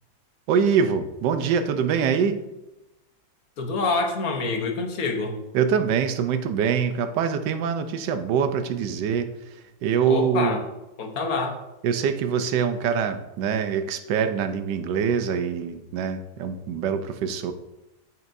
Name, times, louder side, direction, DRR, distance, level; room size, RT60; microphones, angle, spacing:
voice 1, 0.5-2.4 5.5-9.3 9.8-10.6 11.8-17.5, right 7 dB, 80° right, 9 dB, 1.3 m, -24 dB
voice 2, 3.6-5.4 10.1-10.6 11.0-11.6, left 3 dB, 60° left, 3 dB, 1.3 m, -26 dB
8.1 x 7.5 x 2.6 m, 0.96 s
omnidirectional pair, 1.9 m